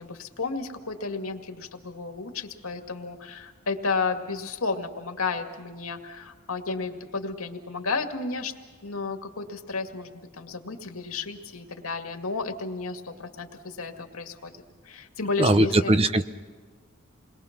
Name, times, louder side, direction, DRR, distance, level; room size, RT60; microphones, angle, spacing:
voice 1, 0.0-8.5 8.8-14.5 14.9-15.9, left 4 dB, 80° left, 4 dB, 2.1 m, -32 dB
voice 2, 15.4-16.2, right 1 dB, 25° right, 11 dB, 0.7 m, -20 dB
28.5 x 21.5 x 6.0 m, 1.4 s
head